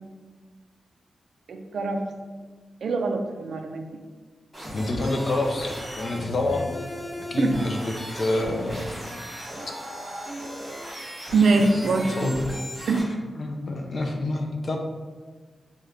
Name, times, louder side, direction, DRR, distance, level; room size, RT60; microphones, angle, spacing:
voice 1, 1.5-2.1 2.8-3.9 7.4-7.6 11.3-12.1 12.9-13.0, right 3 dB, 70° right, 5 dB, 0.3 m, -23 dB
sound 1, 4.5-13.0, equal, 15° right, 1.3 m, -36 dB
voice 2, 4.7-6.9 7.2-8.9 12.0-12.4 13.3-14.8, left 2 dB, 45° left, 2 dB, 0.4 m, -27 dB
3.2 x 2.2 x 3.6 m, 1.4 s
wide cardioid pair, 140°, 0 cm